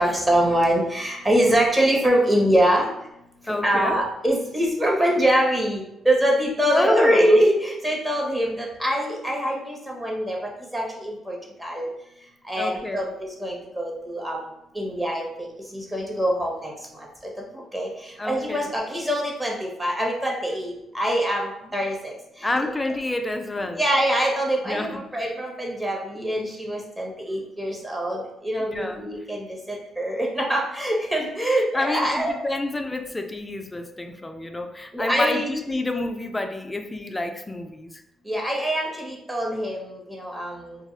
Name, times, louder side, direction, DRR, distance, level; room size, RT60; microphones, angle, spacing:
voice 1, 0.0-2.9 3.6-10.4 10.7-11.9 12.5-14.4 14.7-15.2 15.7-16.7 17.7-17.9 18.2-22.1 23.8-32.4 34.9-35.5 38.3-40.8, equal, 10° right, -1 dB, 0.7 m, -24 dB
voice 2, 3.5-4.0 6.7-7.4 12.6-13.1 18.2-18.7 22.4-23.8 24.6-25.0 28.6-29.0 31.7-38.0, left 2 dB, 15° left, 6 dB, 0.3 m, -29 dB
2.2 x 2.0 x 3.6 m, 0.83 s
cardioid pair, 90°, 0 cm